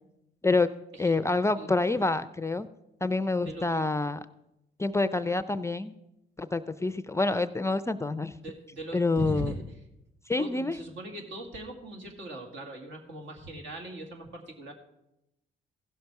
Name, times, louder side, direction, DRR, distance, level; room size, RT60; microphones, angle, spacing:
voice 1, 1.0-2.7 3.0-4.2 4.8-5.9 6.4-8.3 8.9-9.5 10.3-10.7, left 3 dB, 15° left, 13 dB, 0.4 m, -27 dB
voice 2, 3.4-3.9 8.3-9.8 10.4-14.7, right 1 dB, 75° right, 3 dB, 2.1 m, -40 dB
15.5 x 6.6 x 4.6 m, 0.88 s
cardioid pair, 90°, 20 cm